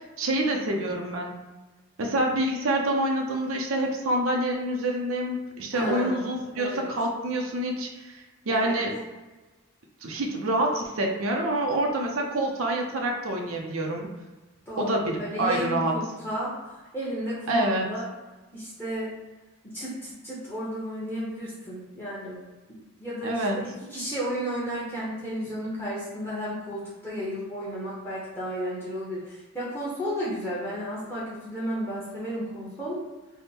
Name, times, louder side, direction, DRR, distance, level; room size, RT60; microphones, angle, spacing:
voice 1, 0.2-1.4 2.0-8.9 10.0-14.1 14.8-15.9 17.5-17.9 23.2-23.7, right 1 dB, 75° right, 1 dB, 0.6 m, -27 dB
voice 2, 5.7-6.2 6.5-6.8 8.5-8.8 14.7-16.5 16.9-18.1 18.5-19.2 19.6-22.4 22.7-33.0, equal, 10° left, -8 dB, 0.8 m, -33 dB
3.5 x 2.1 x 4.2 m, 1.2 s
head